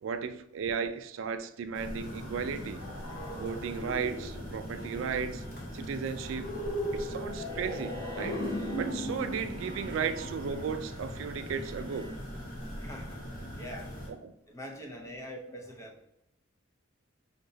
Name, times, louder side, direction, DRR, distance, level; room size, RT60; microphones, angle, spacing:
voice 1, 0.0-2.8 3.4-5.4 5.7-6.5 6.9-8.4 8.8-12.1, right 6 dB, 75° right, 0.3 m, -35 dB
sound 1, 1.7-11.4, equal, 75° left, 1.0 m, -39 dB
sound 2, 1.7-14.1, equal, 45° left, 0.9 m, -42 dB
Bowed string instrument, 7.3-12.2, left 2 dB, 30° right, 0.7 m, -50 dB
voice 2, 12.8-13.2 13.5-14.0 14.5-16.0, equal, 15° left, 0.5 m, -43 dB
5.1 x 2.8 x 2.7 m
head